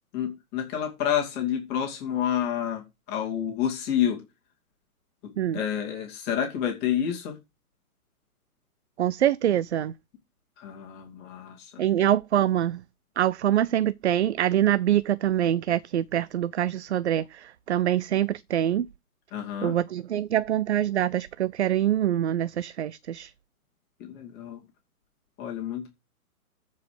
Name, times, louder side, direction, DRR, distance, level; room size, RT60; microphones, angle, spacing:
voice 1, 0.1-4.2 5.2-7.4 10.6-11.8 19.3-19.8 24.0-24.6 25.4-25.9, left 9 dB, 20° left, 2.6 m, -29 dB
voice 2, 9.0-9.9 11.8-12.8 13.2-18.9 19.6-23.3, right 11 dB, 50° right, 0.5 m, -25 dB
13.5 x 5.4 x 5.0 m
hypercardioid pair, 145°, 45 cm